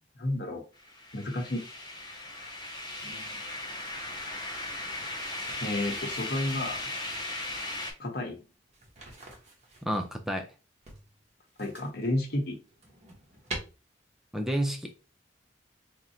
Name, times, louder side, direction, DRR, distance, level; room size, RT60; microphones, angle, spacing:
voice 1, 0.2-0.6 1.1-1.6 3.0-3.4 5.6-6.8 8.0-8.4 11.6-12.6, left 1 dB, 60° left, 1.0 m, -31 dB
sound 1, 0.8-7.9, left 2 dB, 25° left, 1.1 m, -37 dB
sound 2, 5.3-7.3 8.7-10.1 10.8-12.1 12.5-13.6, right 2 dB, 40° right, 1.1 m, -45 dB
voice 2, 9.8-10.5 14.3-14.9, equal, ahead, 0.4 m, -30 dB
3.6 x 2.1 x 4.2 m
head